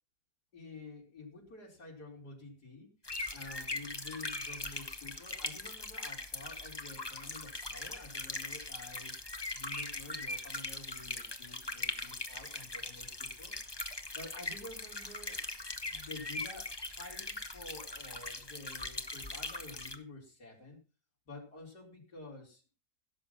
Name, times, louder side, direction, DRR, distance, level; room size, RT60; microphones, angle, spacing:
voice 1, 0.5-2.9 3.3-9.2 9.5-13.5 14.1-15.4 15.9-20.8 21.3-22.6, left 2 dB, 75° left, -1 dB, 4.9 m, -50 dB
sound 1, 3.0-20.0, left 2 dB, 15° left, 1.2 m, -41 dB
16.5 x 7.7 x 5.6 m, 0.32 s
omnidirectional pair, 1.8 m